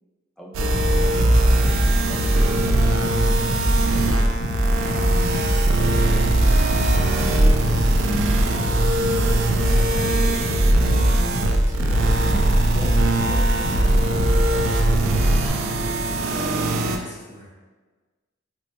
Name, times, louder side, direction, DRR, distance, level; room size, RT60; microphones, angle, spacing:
voice 1, 0.4-2.8 9.7-10.7 12.7-12.9 13.2-15.5, equal, 5° left, -4 dB, 0.5 m, -41 dB
sound 1, 0.5-17.0, right 2 dB, 90° right, 0.4 m, -22 dB
sound 2, 0.7-15.5, equal, 55° left, 0.6 m, -23 dB
voice 2, 11.8-12.2 16.1-17.5, left 1 dB, 30° left, -6 dB, 0.9 m, -41 dB
4.5 x 2.1 x 2.7 m, 1.4 s
head